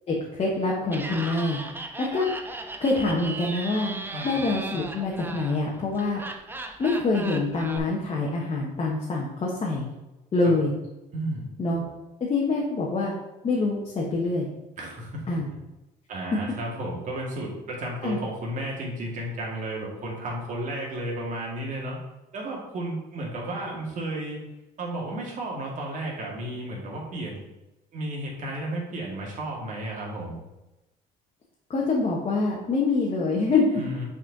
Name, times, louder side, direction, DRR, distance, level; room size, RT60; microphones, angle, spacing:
voice 1, 0.1-1.6 2.0-2.3 2.8-6.2 6.8-9.9 10.3-10.7 11.6-11.8 12.2-13.1 13.4-14.5 15.3-15.5 18.0-18.2 31.7-33.8, left 3 dB, 35° left, -4 dB, 1.2 m, -25 dB
Laughter, 0.8-7.8, right 2 dB, 10° right, 0.6 m, -37 dB
voice 2, 11.1-11.5 14.8-15.2 16.1-22.0 22.3-24.5 24.8-27.4 27.9-30.4 33.8-34.0, right 1 dB, 50° right, -3 dB, 2.2 m, -33 dB
6.2 x 4.3 x 4.0 m, 0.99 s
cardioid pair, 110°, 17 cm